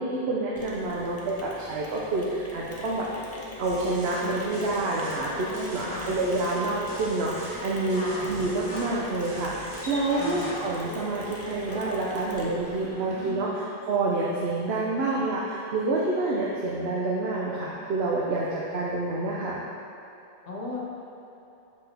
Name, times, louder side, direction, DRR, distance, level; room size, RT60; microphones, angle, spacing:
voice 1, 0.0-3.1 3.6-19.6, right 2 dB, 75° right, -4 dB, 1.0 m, -28 dB
Mechanisms, 0.6-12.9, left 1 dB, 15° left, 0.7 m, -41 dB
sound 1, 3.6-4.2 4.5-5.2 5.5-6.6 6.9-7.6 7.9-8.9 9.2-9.9 10.2-10.5, right 1 dB, 50° right, 1.2 m, -45 dB
voice 2, 5.4-6.1 7.9-8.3 10.1-10.5 13.0-13.5 20.5-20.8, left 1 dB, 65° left, -4 dB, 1.4 m, -36 dB
sound 2, 7.3-13.3, left 1 dB, 35° left, 1.5 m, -43 dB
7.9 x 5.3 x 3.3 m, 2.9 s
omnidirectional pair, 1.1 m